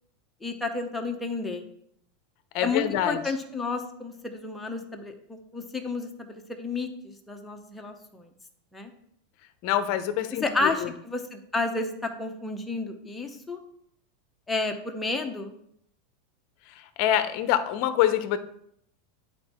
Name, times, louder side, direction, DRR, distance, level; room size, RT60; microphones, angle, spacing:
voice 1, 0.4-1.6 2.6-8.3 8.7-8.9 10.4-13.6 14.5-15.5, left 3 dB, 5° left, 3 dB, 0.8 m, -31 dB
voice 2, 2.5-3.2 9.6-10.9 17.0-18.4, left 11 dB, 45° left, 11 dB, 0.7 m, -25 dB
9.8 x 4.4 x 4.3 m, 0.71 s
supercardioid pair, 165°, 0 cm